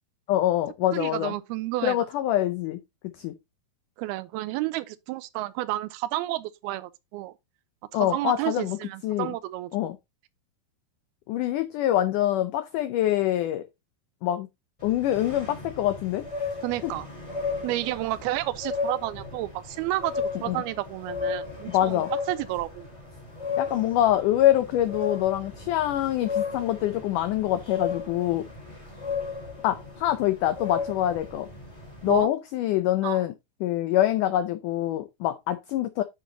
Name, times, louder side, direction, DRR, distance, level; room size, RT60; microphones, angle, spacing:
voice 1, 0.3-1.3 1.8-2.8 3.2-3.3 7.9-8.8 9.0-9.3 9.7-10.0 11.3-13.6 14.2-14.5 14.8-16.2 20.5-20.6 21.7-22.1 23.6-28.4 29.6-31.5 32.0-33.3 33.6-36.0, left 13 dB, 85° left, 1.8 m, -25 dB
voice 2, 0.9-2.0 4.0-7.3 7.9-9.7 16.6-17.1 17.6-22.9 32.1-32.3 33.0-33.2, right 17 dB, 85° right, 2.5 m, -31 dB
sound 1, 14.8-32.2, left 5 dB, 10° left, 2.2 m, -35 dB
9.9 x 6.0 x 2.8 m
omnidirectional pair, 4.5 m